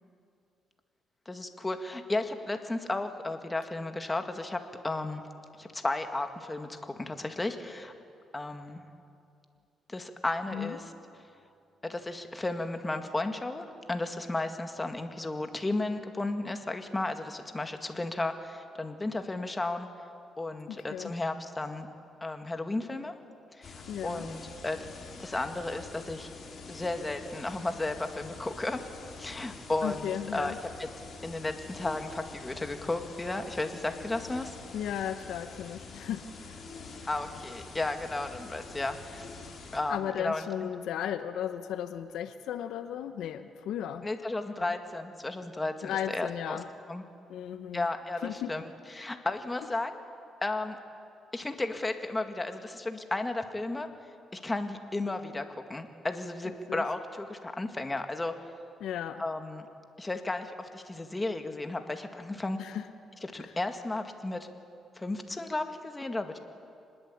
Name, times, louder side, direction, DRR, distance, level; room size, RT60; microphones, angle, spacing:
voice 1, 1.3-5.2 5.6-7.9 8.3-8.8 9.9-10.8 11.8-19.9 20.4-21.9 22.2-23.1 23.5-24.9 25.2-26.3 26.7-28.8 29.2-30.9 31.2-34.6 37.1-39.3 39.7-40.7 44.0-46.6 46.9-47.0 47.7-48.7 48.9-50.0 50.4-50.8 51.3-53.9 54.3-58.3 59.2-59.7 60.0-62.6 63.2-64.5 65.0-66.4, left 2 dB, 20° left, 6 dB, 2.0 m, -34 dB
voice 2, 20.7-21.1 23.9-24.3 29.8-30.6 34.7-36.6 39.9-44.1 45.8-46.7 47.3-47.9 48.2-48.6 56.7-56.8 58.8-59.2 62.6-62.9 63.3-63.5, left 10 dB, 80° left, 9 dB, 1.1 m, -35 dB
sound 1, 23.6-39.8, left 4 dB, 50° left, 5.5 m, -46 dB
25.5 x 20.5 x 8.7 m, 2.5 s
cardioid pair, 90°, 0 cm